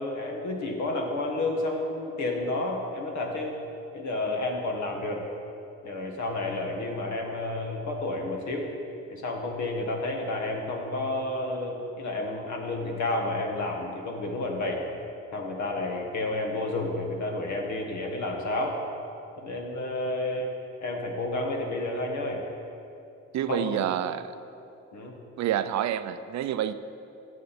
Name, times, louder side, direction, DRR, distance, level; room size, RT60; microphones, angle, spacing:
voice 1, 0.0-3.6 3.9-5.2 5.8-8.7 9.1-14.8 15.3-18.8 19.4-20.5 20.8-22.4 23.5-23.8 24.9-25.2, left 2 dB, 70° left, 1 dB, 1.7 m, -30 dB
voice 2, 23.3-24.3 25.4-26.7, right 11 dB, 65° right, 12 dB, 0.5 m, -28 dB
13.5 x 7.4 x 4.3 m, 2.7 s
cardioid pair, 90°, 30 cm